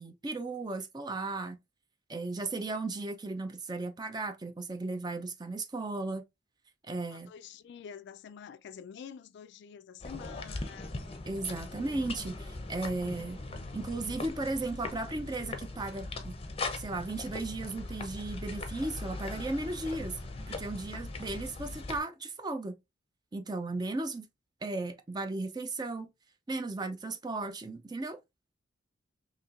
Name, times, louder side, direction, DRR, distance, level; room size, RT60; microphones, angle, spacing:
voice 1, 0.0-1.6 2.1-6.2 6.9-7.3 11.3-13.4 13.7-16.4 16.7-20.2 20.5-22.8 23.3-24.3 24.6-26.1 26.5-28.2, right 2 dB, 20° right, 0.5 m, -35 dB
voice 2, 7.1-11.0, left 7 dB, 60° left, 0.3 m, -47 dB
sound 1, 10.0-22.0, left 2 dB, 30° left, 0.6 m, -40 dB
4.2 x 3.0 x 2.4 m
head